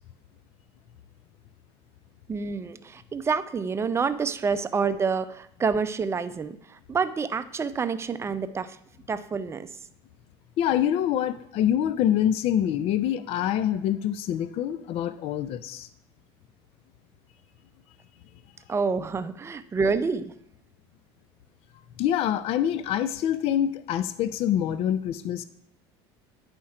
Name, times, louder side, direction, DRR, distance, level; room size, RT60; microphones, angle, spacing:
voice 1, 2.3-6.6 6.9-8.8 9.1-9.7 18.7-20.3, right 5 dB, 20° right, 12 dB, 0.5 m, -27 dB
voice 2, 10.6-15.9 22.0-25.5, left 10 dB, 50° left, 14 dB, 0.4 m, -25 dB
10.0 x 4.4 x 4.8 m, 0.72 s
supercardioid pair, 105°, 13 cm